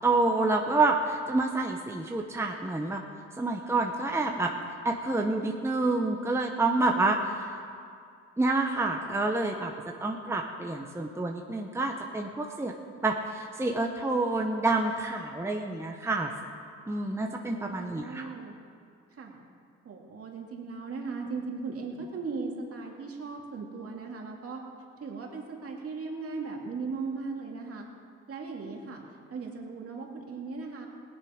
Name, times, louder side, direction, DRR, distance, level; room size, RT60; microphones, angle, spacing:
voice 1, 0.0-3.0 3.4-4.5 4.8-7.5 8.4-9.7 10.0-12.7 13.0-16.3 16.9-18.3, right 2 dB, 10° right, 2 dB, 0.9 m, -28 dB
voice 2, 17.4-18.5 19.1-19.4 19.8-24.6 25.0-27.9 28.3-29.0 29.3-30.9, right 4 dB, 50° right, 0 dB, 2.5 m, -38 dB
18.0 x 10.0 x 5.1 m, 2.3 s
cardioid pair, 90°, 30 cm